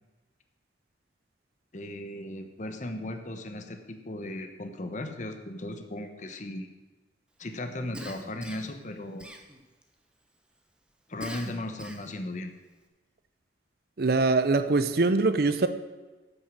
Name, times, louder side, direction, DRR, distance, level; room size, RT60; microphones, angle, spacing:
voice 1, 1.7-6.7 7.4-9.3 11.1-12.5, left 1 dB, 45° left, 0.9 m, -37 dB
Cough, 7.9-8.8 9.2-9.8 11.2-12.2, right 1 dB, 5° right, 1.0 m, -42 dB
voice 2, 14.0-15.7, right 3 dB, 55° right, 0.6 m, -23 dB
9.8 x 6.5 x 7.4 m
head